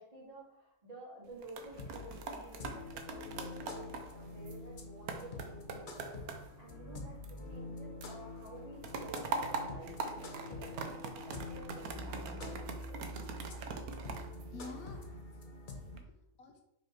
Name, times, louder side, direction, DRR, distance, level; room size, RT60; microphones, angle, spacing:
voice 1, 0.0-13.0, right 1 dB, 25° right, -6 dB, 2.4 m, -52 dB
sound 1, 1.2-7.7 8.0-15.2 15.7-16.0, right 4 dB, 75° right, 1.3 m, -43 dB
sound 2, 1.7-16.0, left 2 dB, 40° left, 0.8 m, -46 dB
voice 2, 14.5-16.6, left 4 dB, 75° left, 4 dB, 1.3 m, -51 dB
5.5 x 4.6 x 4.6 m, 0.84 s
omnidirectional pair, 1.6 m